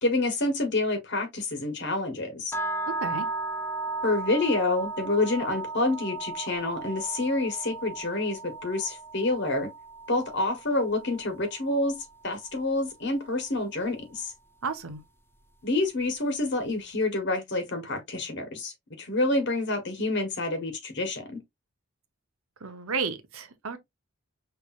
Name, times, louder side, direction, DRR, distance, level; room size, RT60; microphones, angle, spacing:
voice 1, 0.0-2.5 4.0-9.7 10.1-12.0 12.2-14.3 15.6-21.4, left 2 dB, 55° left, 1.3 m, -28 dB
sound 1, 2.5-12.6, right 3 dB, 10° left, 0.4 m, -36 dB
voice 2, 14.6-15.0 22.6-23.8, right 4 dB, 75° right, 1.0 m, -32 dB
5.8 x 3.4 x 2.4 m
head